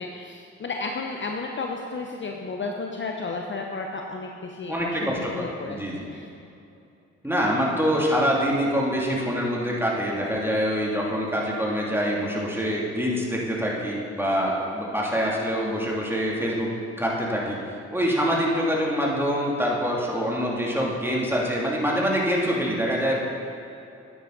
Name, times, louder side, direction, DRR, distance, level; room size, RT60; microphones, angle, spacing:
voice 1, 0.0-5.8 6.1-6.3, left 3 dB, 35° left, 2 dB, 0.8 m, -33 dB
voice 2, 4.7-6.0 7.2-17.6 17.9-23.2, equal, 5° right, -3 dB, 2.6 m, -25 dB
10.0 x 9.0 x 3.9 m, 2.7 s
hypercardioid pair, 45°, 34 cm